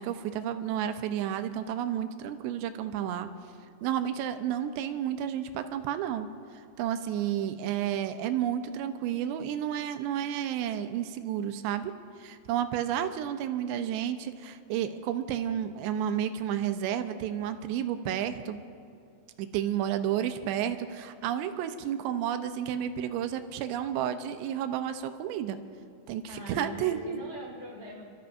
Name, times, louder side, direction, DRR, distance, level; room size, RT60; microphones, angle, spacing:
voice 1, 0.0-3.3 3.8-6.3 6.5-18.6 19.4-25.6 26.1-27.2, right 10 dB, 85° right, 9 dB, 2.8 m, -31 dB
voice 2, 26.3-28.1, equal, 85° left, -5 dB, 0.5 m, -42 dB
28.5 x 13.0 x 2.6 m, 2.5 s
omnidirectional pair, 5.0 m